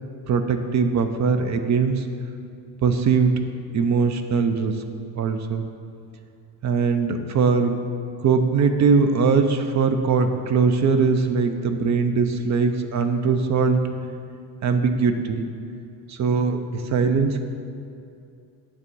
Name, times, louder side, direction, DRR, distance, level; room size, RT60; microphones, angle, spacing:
voice 1, 0.3-2.0 2.8-3.4 3.7-4.8 5.2-5.7 6.6-7.7 8.2-13.9 14.6-15.5 16.1-17.5, right 5 dB, 45° right, 7 dB, 0.5 m, -21 dB
9.5 x 3.6 x 6.8 m, 2.5 s
cardioid pair, 145°, 42 cm